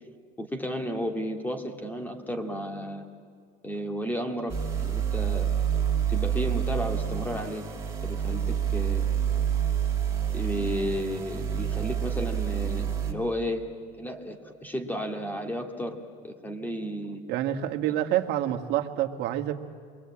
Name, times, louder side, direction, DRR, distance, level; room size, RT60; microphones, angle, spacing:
voice 1, 0.4-3.0 3.6-5.5 6.1-7.7 8.0-9.0 10.3-13.7 14.0-16.0 16.2-17.2, equal, 10° left, 5 dB, 2.2 m, -33 dB
sound 1, 4.5-13.1, right 9 dB, 15° right, 2.9 m, -28 dB
voice 2, 17.3-19.5, right 12 dB, 60° right, 4 dB, 1.8 m, -27 dB
27.5 x 22.5 x 8.7 m, 2.1 s
cardioid pair, 130°, 20 cm